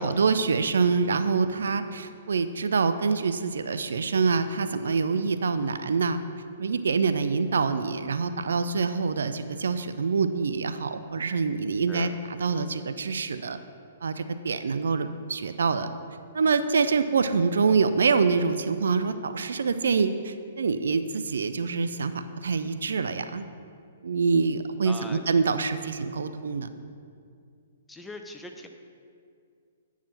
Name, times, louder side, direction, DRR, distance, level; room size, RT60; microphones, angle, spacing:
voice 1, 0.0-6.2 6.6-12.1 12.4-13.6 14.0-15.9 16.3-23.4 24.0-26.7, right 5 dB, 75° right, 10 dB, 0.4 m, -25 dB
voice 2, 24.8-25.2 27.9-28.7, left 2 dB, 5° left, 4 dB, 0.6 m, -40 dB
8.8 x 4.8 x 5.7 m, 2.3 s
hypercardioid pair, 125°, 0 cm